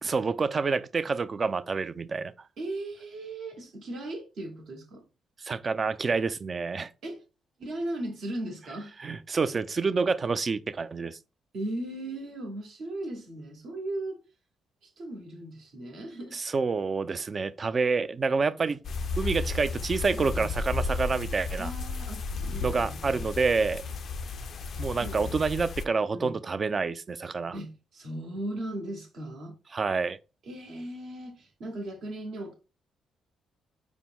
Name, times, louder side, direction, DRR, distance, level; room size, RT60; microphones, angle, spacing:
voice 1, 0.0-2.3 5.4-6.9 9.0-11.2 16.3-18.8 19.2-21.7 22.6-23.8 24.8-27.6 29.7-30.2, right 4 dB, 40° right, 0.3 m, -28 dB
voice 2, 2.6-5.0 7.0-7.2 7.6-8.9 11.5-14.2 14.8-16.4 20.1-20.5 21.6-23.2 25.0-25.4 26.1-26.4 27.5-29.5 30.4-32.5, right 1 dB, 60° right, 1.0 m, -37 dB
sound 1, 18.8-25.8, left 4 dB, 55° left, 0.3 m, -33 dB
4.7 x 2.0 x 3.6 m
hypercardioid pair, 45°, 0 cm